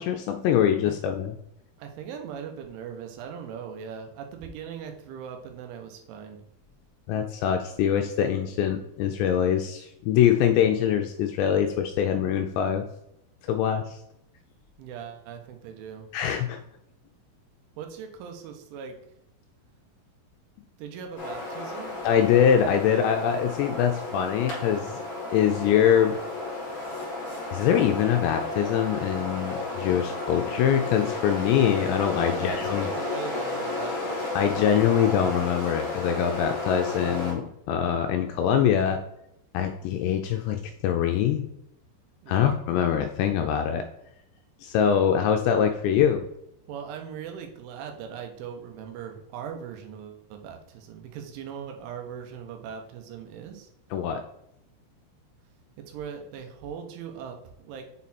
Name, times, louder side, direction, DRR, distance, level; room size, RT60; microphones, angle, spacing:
voice 1, 0.0-1.3 7.1-12.9 13.5-14.0 16.1-16.6 22.0-25.0 25.3-26.2 27.5-32.9 34.4-39.0 39.5-41.5 42.3-43.8 44.6-46.2 53.9-54.2, left 9 dB, 85° left, 5 dB, 2.5 m, -23 dB
voice 2, 1.8-6.4 14.8-16.1 17.8-19.0 20.8-22.0 32.2-34.4 42.2-42.6 46.7-53.7 55.9-57.9, right 7 dB, 90° right, 4 dB, 3.4 m, -40 dB
sound 1, 21.2-37.3, left 2 dB, 50° left, 3.4 m, -33 dB
7.2 x 4.2 x 4.1 m, 0.78 s
omnidirectional pair, 5.4 m